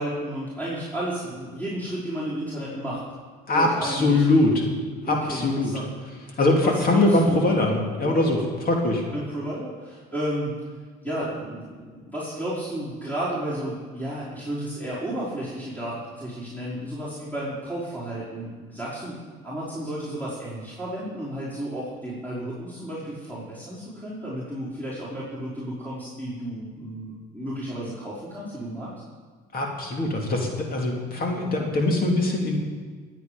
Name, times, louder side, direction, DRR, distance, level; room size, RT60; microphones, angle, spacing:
voice 1, 0.0-3.0 3.5-4.3 5.0-5.9 6.2-7.4 8.0-8.2 9.1-10.6 11.0-28.9, right 1 dB, 10° left, -9 dB, 5.1 m, -32 dB
voice 2, 3.5-4.6 5.1-5.7 6.4-9.0 29.5-32.6, left 2 dB, 45° left, 1 dB, 2.7 m, -22 dB
19.5 x 8.5 x 5.2 m, 1.5 s
supercardioid pair, 75°, 20 cm